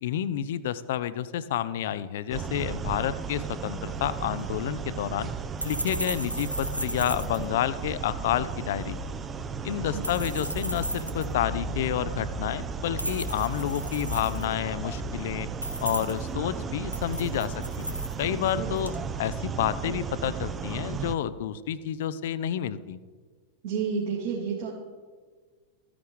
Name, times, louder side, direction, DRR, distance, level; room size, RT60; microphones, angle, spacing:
voice 1, 0.0-5.3 5.6-9.0 9.6-15.5 15.8-18.9 19.2-23.0, left 10 dB, 55° left, 16 dB, 0.5 m, -29 dB
sound 1, 2.3-21.2, right 4 dB, 20° right, 0.6 m, -34 dB
sound 2, 3.9-19.0, right 1 dB, 85° right, 0.7 m, -38 dB
voice 2, 9.7-10.1 18.5-18.9 23.6-24.7, right 6 dB, 55° right, -5 dB, 2.4 m, -31 dB
14.5 x 9.7 x 3.6 m, 1.5 s
figure-of-eight pair, 90°, 0 cm